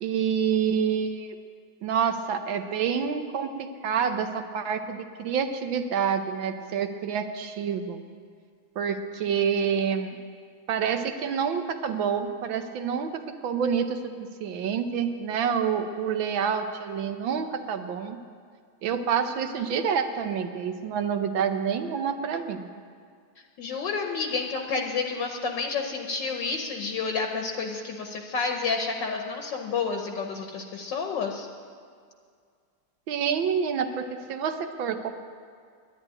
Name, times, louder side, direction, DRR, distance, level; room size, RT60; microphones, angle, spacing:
voice 1, 0.0-1.3 1.8-8.0 8.8-10.2 10.7-14.1 14.4-18.2 18.8-22.7 33.1-35.1, right 7 dB, 70° right, 7 dB, 1.4 m, -28 dB
voice 2, 23.6-31.5, left 4 dB, 65° left, 3 dB, 1.5 m, -30 dB
11.0 x 10.5 x 9.8 m, 2.1 s
omnidirectional pair, 2.3 m